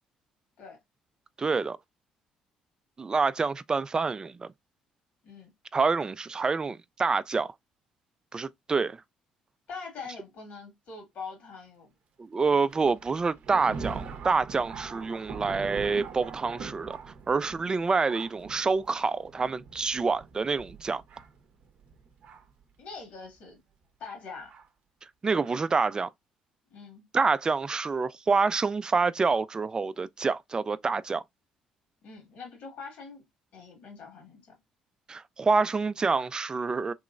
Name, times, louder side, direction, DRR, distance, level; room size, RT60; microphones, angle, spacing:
voice 1, 1.4-1.8 3.0-4.5 5.7-7.5 8.3-9.0 12.2-21.0 25.2-26.1 27.1-31.2 35.1-36.9, right 4 dB, 30° right, 0.3 m, -27 dB
voice 2, 9.7-11.9 22.8-23.6 24.0-24.5 26.7-27.0 32.0-33.2 33.5-34.5, left 5 dB, 70° left, 1.7 m, -43 dB
Thunder, 12.7-22.6 23.4-23.5 24.5-24.7 25.4-25.6, right 5 dB, 60° right, 0.6 m, -43 dB
3.0 x 2.9 x 2.4 m
supercardioid pair, 60°, 3 cm